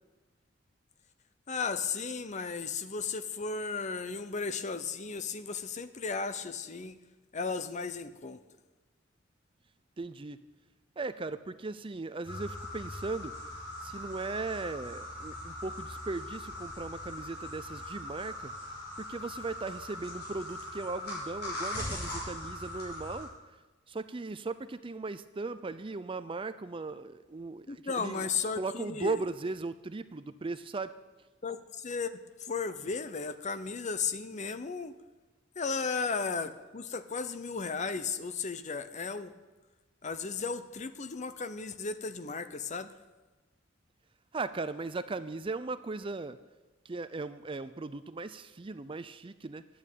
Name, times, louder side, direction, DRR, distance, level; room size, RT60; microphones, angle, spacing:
voice 1, 1.5-7.0 7.3-8.4 27.7-29.2 31.4-34.9 35.6-39.3 40.0-42.9, left 5 dB, 40° left, 12 dB, 0.7 m, -35 dB
voice 2, 10.0-10.5 11.0-13.3 13.8-18.5 19.0-23.3 23.9-28.2 28.6-30.9 44.3-46.4 46.8-49.7, right 3 dB, 25° right, 13 dB, 0.5 m, -37 dB
sound 1, 12.2-23.2, left 1 dB, 55° left, 5.6 m, -41 dB
11.0 x 8.6 x 9.1 m, 1.2 s
head